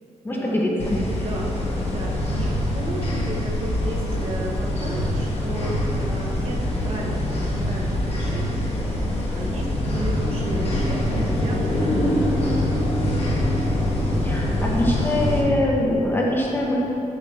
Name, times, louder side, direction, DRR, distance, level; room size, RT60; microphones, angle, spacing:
voice 1, 0.2-1.3 14.2-16.8, left 1 dB, 15° left, -3 dB, 0.8 m, -23 dB
sound 1, 0.8-15.4, left 1 dB, 50° left, 1.2 m, -24 dB
voice 2, 1.2-1.5 1.8-8.7 9.3-12.6, right 1 dB, 50° right, -3 dB, 1.1 m, -33 dB
7.5 x 6.9 x 3.3 m, 2.8 s
wide cardioid pair, 155°, 13 cm